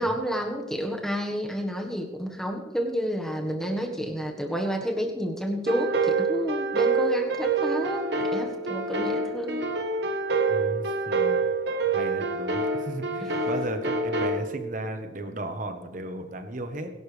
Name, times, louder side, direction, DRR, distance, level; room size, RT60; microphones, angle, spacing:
voice 1, 0.0-9.7, equal, 5° left, 1 dB, 1.4 m, -30 dB
sound 1, 5.7-14.4, right 3 dB, 60° right, 1.3 m, -27 dB
voice 2, 10.5-11.5 11.9-16.9, right 1 dB, 40° right, 7 dB, 1.2 m, -35 dB
21.5 x 11.5 x 3.4 m, 1.2 s
head